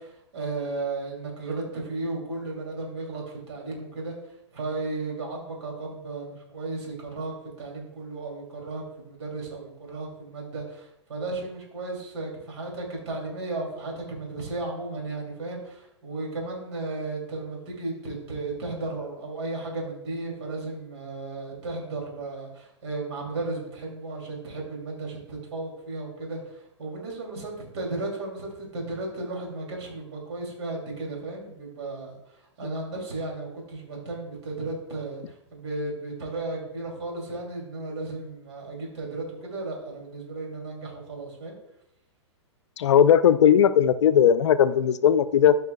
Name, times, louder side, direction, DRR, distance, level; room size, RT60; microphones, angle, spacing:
voice 1, 0.0-4.2 4.5-26.4 26.8-32.1 32.6-35.2 35.5-41.5, right 2 dB, 65° right, -1 dB, 2.6 m, -34 dB
voice 2, 42.8-45.6, left 9 dB, 70° left, 13 dB, 0.4 m, -18 dB
13.5 x 5.5 x 2.2 m, 0.84 s
hypercardioid pair, 115°, 15 cm